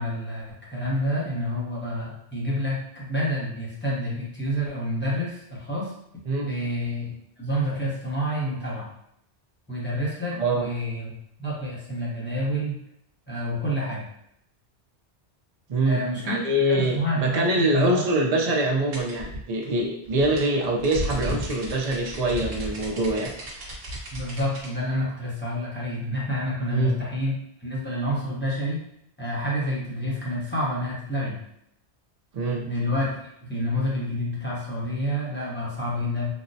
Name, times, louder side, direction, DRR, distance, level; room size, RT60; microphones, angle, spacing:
voice 1, 0.0-5.9 6.4-8.9 9.7-11.1 11.4-12.8 13.3-14.0 15.8-18.0 24.1-27.3 27.6-28.8 29.2-31.4 32.6-33.1 33.4-36.3, equal, 10° left, -7 dB, 0.7 m, -28 dB
voice 2, 10.4-10.7 15.7-23.3 26.7-26.9 32.3-32.7, right 1 dB, 45° right, 0 dB, 0.5 m, -24 dB
sound 1, 18.9-24.7, right 1 dB, 65° right, 1.0 m, -34 dB
3.6 x 2.1 x 2.7 m, 0.74 s
omnidirectional pair, 1.1 m